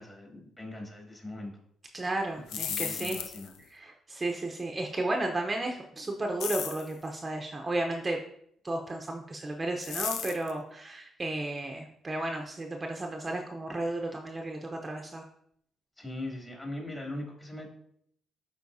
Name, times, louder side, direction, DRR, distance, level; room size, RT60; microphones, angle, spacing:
voice 1, 0.0-1.5 2.5-3.5 16.0-17.7, left 1 dB, 20° left, -1 dB, 2.8 m, -40 dB
voice 2, 1.9-3.2 3.7-8.2 8.6-15.2, right 2 dB, 25° right, 2 dB, 0.8 m, -33 dB
sound 1, 2.3-3.6 6.4-6.9 9.8-10.5, left 8 dB, 85° left, 0.5 m, -35 dB
11.5 x 4.5 x 2.7 m, 0.69 s
cardioid pair, 90°, 0 cm